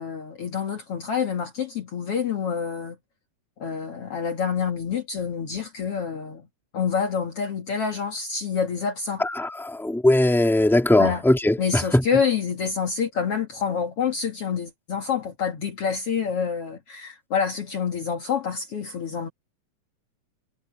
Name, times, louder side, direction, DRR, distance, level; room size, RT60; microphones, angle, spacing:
voice 1, 0.0-3.0 3.6-6.5 6.7-9.2 11.0-11.2 11.6-19.3, left 6 dB, 50° left, 2.6 m, -27 dB
voice 2, 9.2-12.0, left 1 dB, ahead, 3.3 m, -20 dB
omnidirectional pair, 3.6 m